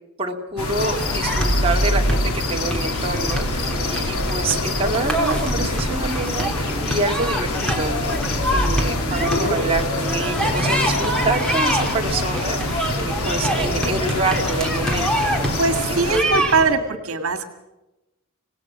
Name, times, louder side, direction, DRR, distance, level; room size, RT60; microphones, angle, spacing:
voice 1, 0.2-15.5 15.9-16.4, right 3 dB, 25° right, 1 dB, 2.7 m, -27 dB
sound 1, 0.6-16.2, left 2 dB, 85° left, 2.4 m, -27 dB
sound 2, 0.8-16.7, equal, 5° left, 3.5 m, -26 dB
sound 3, 1.3-2.9 8.5-11.5, right 1 dB, 45° left, 3.4 m, -25 dB
voice 2, 15.6-17.5, right 3 dB, 75° right, 8 dB, 1.9 m, -21 dB
25.5 x 18.5 x 6.2 m, 0.97 s
head